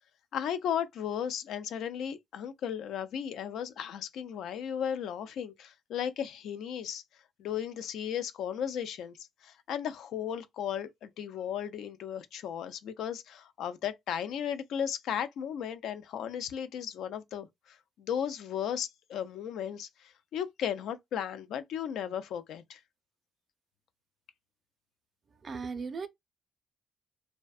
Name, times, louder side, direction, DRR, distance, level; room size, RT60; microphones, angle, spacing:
voice 1, 0.3-7.0 7.4-9.2 9.4-22.8, left 9 dB, 80° left, 0.3 m, -35 dB
voice 2, 25.4-26.1, right 5 dB, 45° right, 0.4 m, -36 dB
2.5 x 2.1 x 2.3 m
cardioid pair, 90°, 0 cm